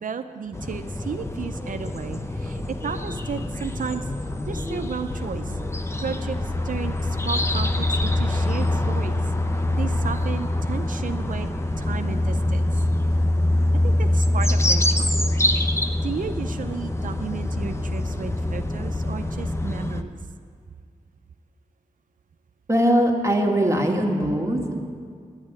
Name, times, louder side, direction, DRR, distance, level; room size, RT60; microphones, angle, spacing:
voice 1, 0.0-4.1 4.5-5.6 6.0-9.2 9.5-12.8 13.8-15.1 15.6-15.7 16.0-20.2, right 6 dB, 75° right, 8 dB, 0.5 m, -33 dB
sound 1, 0.5-20.0, left 1 dB, 20° left, 0.8 m, -25 dB
voice 2, 22.7-24.8, equal, 20° right, 0 dB, 1.9 m, -21 dB
10.5 x 8.7 x 8.9 m, 2.1 s
cardioid pair, 55°, 14 cm